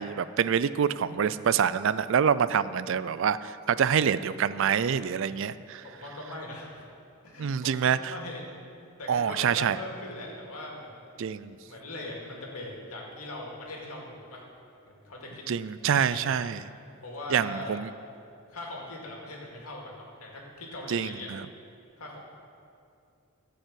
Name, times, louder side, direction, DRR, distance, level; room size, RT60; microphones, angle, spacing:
voice 1, 0.0-5.8 7.4-8.1 9.1-9.8 11.2-11.6 15.5-16.6 17.3-17.9 20.9-21.4, right 7 dB, 60° right, 15 dB, 0.3 m, -26 dB
voice 2, 5.8-6.8 7.2-8.5 9.0-11.0 11.7-14.4 14.9-15.4 15.9-16.5 17.0-17.8 18.5-21.3 22.0-22.2, left 2 dB, 90° left, -2 dB, 2.3 m, -40 dB
14.0 x 5.4 x 7.6 m, 2.5 s
head